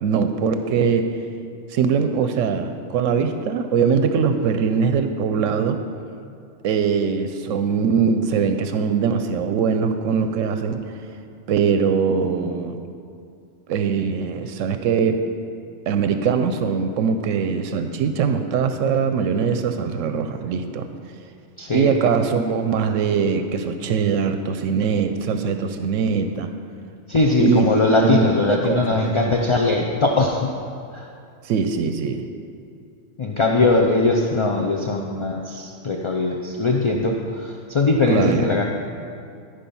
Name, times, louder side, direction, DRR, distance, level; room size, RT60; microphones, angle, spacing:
voice 1, 0.0-1.1 1.7-5.8 6.6-10.9 11.5-12.8 13.7-15.2 15.9-20.9 21.7-26.5 27.4-27.7 28.0-29.1 31.4-32.2 38.1-38.5, right 6 dB, 80° right, 8 dB, 0.9 m, -21 dB
voice 2, 21.6-21.9 27.1-30.5 30.9-31.0 33.2-38.6, left 3 dB, 40° left, 0 dB, 0.4 m, -20 dB
14.5 x 5.3 x 5.4 m, 2.4 s
omnidirectional pair, 1.3 m